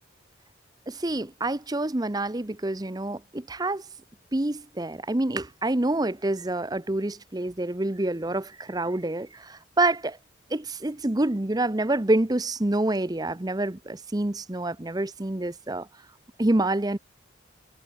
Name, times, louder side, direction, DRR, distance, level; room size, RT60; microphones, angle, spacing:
voice 1, 0.9-3.8 4.3-10.2 10.5-15.9 16.4-17.0, right 2 dB, 20° right, 0.7 m, -27 dB
head